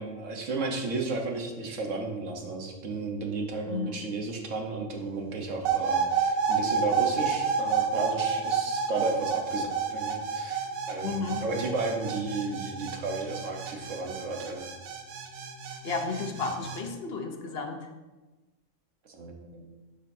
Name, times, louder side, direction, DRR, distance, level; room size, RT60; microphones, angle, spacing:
voice 1, 0.0-14.7 19.1-19.7, right 3 dB, 65° right, 2 dB, 1.4 m, -33 dB
voice 2, 3.7-4.0 11.0-11.4 15.8-17.9, left 4 dB, 50° left, 4 dB, 0.9 m, -33 dB
sound 1, 5.6-16.8, right 6 dB, 85° right, 1.2 m, -30 dB
11.5 x 5.2 x 2.7 m, 1.2 s
omnidirectional pair, 1.5 m